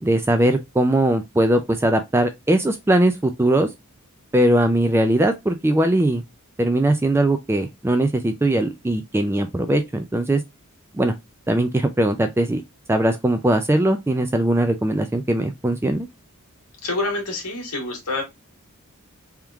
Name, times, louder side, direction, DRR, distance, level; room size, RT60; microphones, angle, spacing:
voice 1, 0.0-3.7 4.3-6.2 6.6-10.4 10.9-11.1 11.5-12.6 12.9-16.1, right 1 dB, 10° right, 0.3 m, -20 dB
voice 2, 16.8-18.2, left 2 dB, 90° left, 1.7 m, -27 dB
3.5 x 3.0 x 3.5 m
head